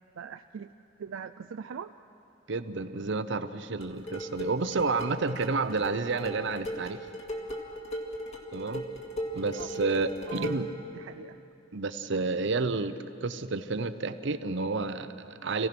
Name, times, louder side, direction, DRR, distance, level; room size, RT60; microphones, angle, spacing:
voice 1, 0.1-0.7 1.0-1.9 9.6-9.7 10.3-10.6 10.9-11.4, right 7 dB, 85° right, 8 dB, 0.4 m, -41 dB
voice 2, 2.5-7.1 8.5-8.9 9.3-10.7 11.7-12.9 13.2-15.7, right 3 dB, 65° right, 11 dB, 0.8 m, -30 dB
sound 1, 3.8-10.8, equal, 35° left, 2.1 m, -38 dB
26.5 x 16.5 x 6.0 m, 2.8 s
head